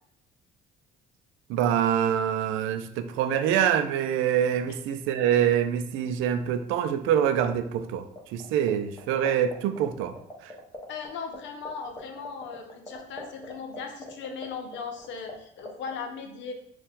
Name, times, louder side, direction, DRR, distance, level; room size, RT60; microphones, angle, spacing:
voice 1, 1.5-8.1 8.3-10.2 10.4-10.5, right 9 dB, 75° right, 10 dB, 0.4 m, -25 dB
sound 1, 8.2-8.7 9.0-11.1 11.3-11.4 11.6-15.3 15.6-15.9, left 1 dB, 15° left, 1.1 m, -40 dB
voice 2, 10.9-16.5, left 5 dB, 65° left, 4 dB, 0.7 m, -38 dB
4.1 x 2.4 x 3.6 m, 0.70 s
supercardioid pair, 70°, 21 cm